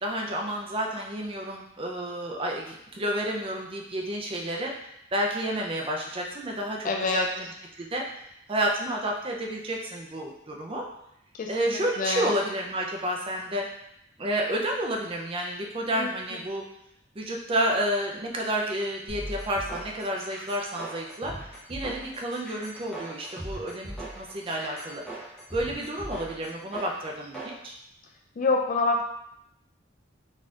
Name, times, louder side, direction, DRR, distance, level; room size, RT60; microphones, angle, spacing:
voice 1, 0.0-4.7 5.1-7.4 7.8-8.0 8.5-10.8 11.5-13.7 14.2-16.7 17.2-21.3 21.7-25.0 25.5-27.8, right 1 dB, 30° right, 0 dB, 0.5 m, -30 dB
voice 2, 6.8-7.3 11.3-12.3 16.0-16.1 28.4-29.0, left 3 dB, 40° left, 2 dB, 0.3 m, -26 dB
sound 1, 19.1-27.6, right 1 dB, 5° left, 0.8 m, -40 dB
4.1 x 2.8 x 2.4 m, 0.78 s
head